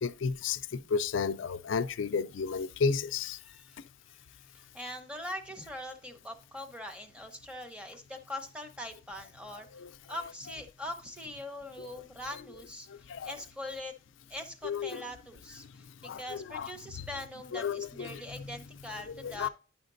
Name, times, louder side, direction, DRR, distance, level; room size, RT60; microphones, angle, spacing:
voice 1, 0.0-3.4 9.8-9.9 13.1-13.3 14.6-15.0 16.0-16.2 16.5-16.7 17.5-18.2 19.2-19.5, left 5 dB, 75° left, 0.4 m, -32 dB
voice 2, 3.4-3.8 4.2-13.9 14.3-19.5, left 1 dB, 5° right, 0.8 m, -42 dB
9.5 x 5.7 x 2.5 m
head